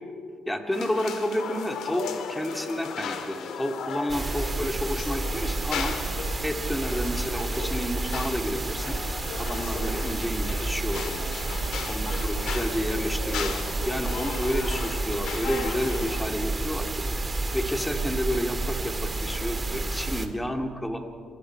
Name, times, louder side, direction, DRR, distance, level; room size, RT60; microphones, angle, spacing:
voice 1, 0.5-2.0 2.3-5.9 6.4-9.0 9.4-11.3 11.9-17.0 17.5-21.0, equal, 10° left, 4 dB, 2.4 m, -30 dB
sound 1, 0.7-16.3, left 6 dB, 75° left, 1.9 m, -36 dB
sound 2, 4.1-20.3, right 3 dB, 25° right, 1.9 m, -30 dB
27.5 x 21.5 x 4.7 m, 2.3 s
cardioid pair, 90°, 0 cm